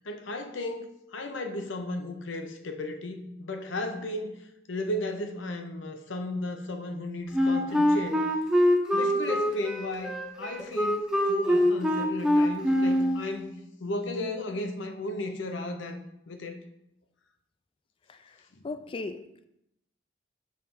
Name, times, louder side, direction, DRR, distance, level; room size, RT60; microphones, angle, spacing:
voice 1, 0.0-4.3 4.7-8.2 8.9-11.0 11.3-13.5 13.8-16.0 16.3-16.6, left 2 dB, 80° left, 6 dB, 0.7 m, -34 dB
Wind instrument woodwind instrument, 7.3-13.2, equal, 5° right, 0.7 m, -24 dB
voice 2, 18.6-19.5, left 3 dB, 30° left, 9 dB, 0.3 m, -37 dB
6.6 x 3.3 x 5.2 m, 0.83 s
head